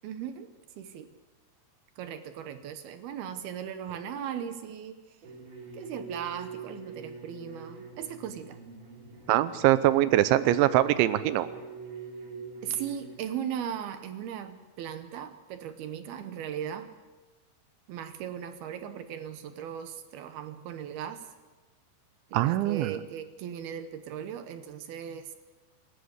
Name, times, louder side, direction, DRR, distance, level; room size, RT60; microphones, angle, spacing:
voice 1, 0.0-1.1 2.0-5.0 5.7-8.6 12.6-16.9 17.9-21.3 22.3-25.3, right 9 dB, 70° right, 9 dB, 2.6 m, -38 dB
sound 1, 5.2-13.1, right 4 dB, 45° right, 5.2 m, -44 dB
voice 2, 9.3-11.5 22.3-23.0, right 14 dB, 90° right, 14 dB, 3.2 m, -23 dB
26.5 x 13.0 x 8.1 m, 1.3 s
omnidirectional pair, 5.2 m